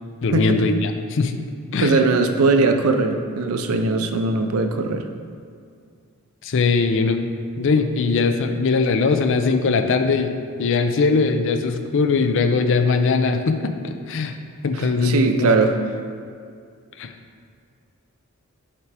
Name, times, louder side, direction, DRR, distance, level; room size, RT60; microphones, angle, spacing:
voice 1, 0.2-1.4 1.7-2.0 6.4-7.3 7.6-10.3 10.6-14.3 14.6-15.6 17.0-17.1, left 4 dB, 60° left, 7 dB, 0.5 m, -20 dB
voice 2, 1.8-5.1 14.8-15.7, right 3 dB, 80° right, 7 dB, 0.5 m, -20 dB
5.7 x 4.6 x 4.8 m, 2.3 s
head